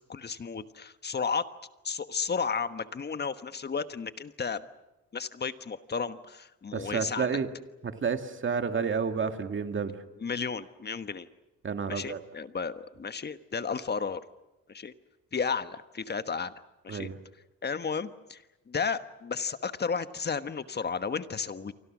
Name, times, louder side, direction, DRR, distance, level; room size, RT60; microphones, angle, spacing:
voice 1, 0.0-1.5 1.8-4.6 5.1-7.3 10.2-11.3 11.9-14.2 14.7-14.9 15.3-16.5 16.8-17.1 17.6-21.7, left 5 dB, 35° left, 11 dB, 1.3 m, -33 dB
voice 2, 6.7-7.5 7.8-10.0 11.6-12.2 16.9-17.2, right 6 dB, 40° right, 7 dB, 2.2 m, -30 dB
30.0 x 24.5 x 6.2 m, 1.0 s
cardioid pair, 90°, 30 cm